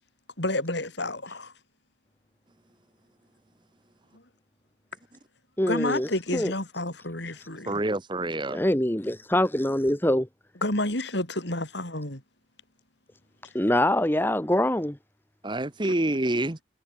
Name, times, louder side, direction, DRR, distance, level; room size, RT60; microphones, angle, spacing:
voice 1, 0.4-1.5 5.6-7.8 10.6-12.2 15.8-15.9, left 1 dB, 60° left, 4.8 m, -30 dB
voice 2, 5.6-6.5 8.5-10.3 13.5-15.0, left 1 dB, 10° left, 1.3 m, -24 dB
voice 3, 7.7-8.6 15.4-16.6, right 1 dB, 25° right, 1.1 m, -27 dB
head